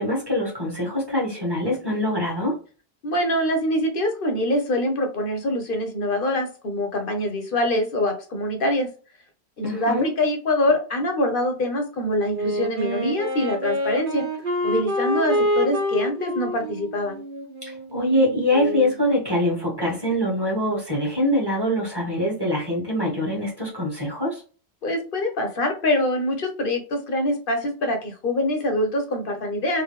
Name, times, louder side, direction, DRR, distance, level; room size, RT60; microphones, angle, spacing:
voice 1, 0.0-2.6 9.6-10.1 17.6-24.4, left 1 dB, 20° right, -3 dB, 1.6 m, -24 dB
voice 2, 3.0-8.9 9.6-14.2 14.6-17.2 24.8-29.8, left 1 dB, 55° left, 4 dB, 1.0 m, -24 dB
Wind instrument woodwind instrument, 12.3-19.0, equal, 55° right, 1.1 m, -27 dB
3.7 x 2.6 x 3.1 m, 0.37 s
omnidirectional pair, 1.1 m